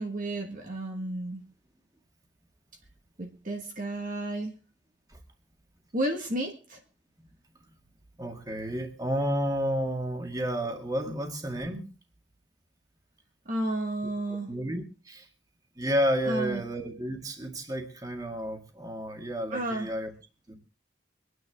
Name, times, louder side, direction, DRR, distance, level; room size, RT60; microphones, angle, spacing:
voice 1, 0.0-1.4 3.2-4.5 5.9-6.8 13.4-14.5 16.3-16.6 19.5-19.9, right 1 dB, 45° right, 3 dB, 1.6 m, -32 dB
voice 2, 8.2-11.9 14.3-15.3 15.8-20.1 20.5-20.6, equal, 20° right, 3 dB, 2.1 m, -31 dB
24.5 x 9.8 x 3.6 m, 0.34 s
head